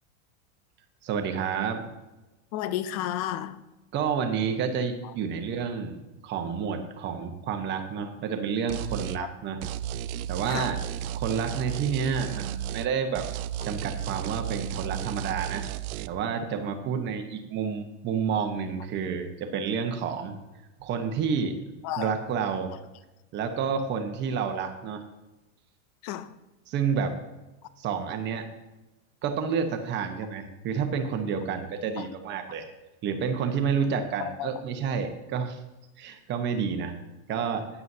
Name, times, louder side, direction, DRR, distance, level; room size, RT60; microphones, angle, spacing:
voice 1, 1.0-1.8 3.9-6.0 6.2-9.6 10.3-10.8 11.1-13.3 13.6-15.7 16.1-20.3 20.8-21.6 22.0-22.7 23.3-25.0 26.7-27.2 27.8-28.5 29.2-32.7 33.0-35.6 36.0-37.0 37.3-37.7, right 6 dB, 25° right, 1.1 m, -29 dB
voice 2, 2.5-3.6 10.5-10.7 21.8-22.1 26.0-26.3 32.0-32.1 34.2-34.6, left 11 dB, 30° left, 0.4 m, -32 dB
sound 1, 8.7-9.2 9.6-12.9 13.2-16.1, right 10 dB, 80° right, 0.6 m, -33 dB
15.5 x 9.4 x 2.8 m
supercardioid pair, 165°, 42 cm